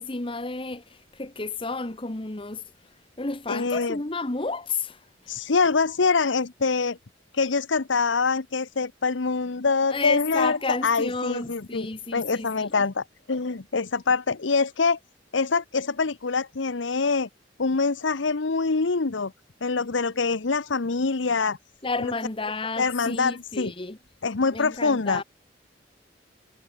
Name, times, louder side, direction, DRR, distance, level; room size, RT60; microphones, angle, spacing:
voice 1, 0.0-2.6 3.2-5.5 9.9-12.7 21.8-24.0 24.5-25.2, left 3 dB, 30° left, 1.2 m, -31 dB
voice 2, 3.5-4.0 5.3-7.0 7.3-15.0 15.3-17.3 17.6-19.3 19.6-21.6 22.0-22.1 22.8-23.7 24.2-25.2, left 4 dB, 85° left, 0.9 m, -25 dB
head